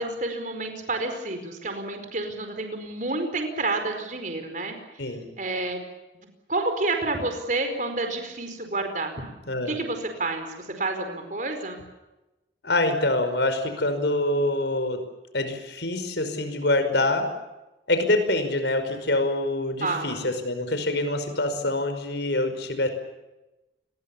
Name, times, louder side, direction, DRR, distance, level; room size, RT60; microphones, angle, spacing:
voice 1, 0.0-4.8 5.4-5.8 6.5-9.2 9.6-11.8 19.8-20.1, right 2 dB, 45° right, 6 dB, 4.7 m, -29 dB
voice 2, 9.5-9.8 12.6-15.0 15.3-17.3 17.9-22.9, left 2 dB, 70° left, 8 dB, 5.3 m, -25 dB
29.0 x 22.0 x 7.1 m, 1.0 s
head